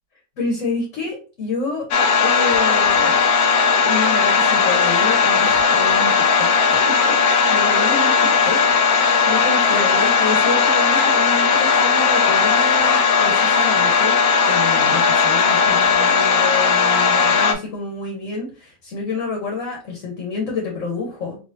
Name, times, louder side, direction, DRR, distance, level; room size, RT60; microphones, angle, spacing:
voice 1, 0.4-1.9 2.2-3.2 3.8-6.1 6.4-8.1 8.4-14.2 14.4-21.4, left 3 dB, 60° left, -1 dB, 1.3 m, -28 dB
sound 1, 1.9-17.5, left 5 dB, 75° left, 1.0 m, -17 dB
3.6 x 2.9 x 2.6 m, 0.35 s
omnidirectional pair, 1.6 m